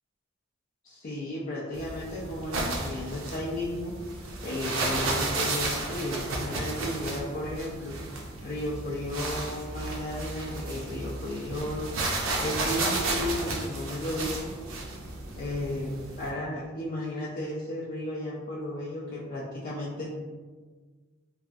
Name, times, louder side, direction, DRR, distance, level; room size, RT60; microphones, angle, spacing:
voice 1, 0.8-3.9 4.4-7.9 8.4-11.9 12.4-14.5 15.4-20.2, left 1 dB, 45° left, -6 dB, 0.4 m, -34 dB
sound 1, 1.7-16.3, right 2 dB, 75° right, 0.5 m, -33 dB
3.2 x 2.3 x 2.5 m, 1.4 s
head